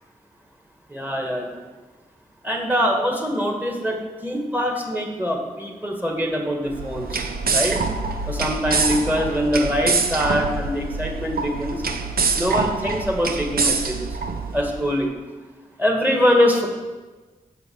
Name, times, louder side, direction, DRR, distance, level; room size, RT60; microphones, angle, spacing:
voice 1, 0.9-1.6 2.4-7.3 7.5-7.8 8.3-11.8 12.3-14.2 14.5-15.1 15.8-16.7, equal, 10° right, 1 dB, 2.0 m, -23 dB
sound 1, 6.7-14.8, right 4 dB, 75° right, 0.7 m, -25 dB
6.8 x 5.5 x 7.0 m, 1.2 s
cardioid pair, 50°, 15 cm